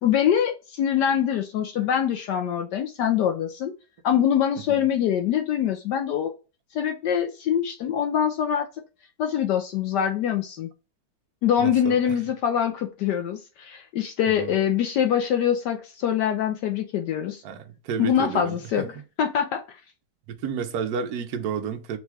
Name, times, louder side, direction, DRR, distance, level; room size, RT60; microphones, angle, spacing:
voice 1, 0.0-3.7 4.0-6.3 6.7-8.7 9.2-10.7 11.4-17.4 18.0-18.9 19.2-19.6, left 9 dB, 75° left, 1.0 m, -24 dB
voice 2, 11.6-12.1 14.3-14.5 17.4-18.9 20.3-22.0, right 6 dB, 65° right, 1.0 m, -31 dB
4.0 x 2.3 x 4.5 m
omnidirectional pair, 2.2 m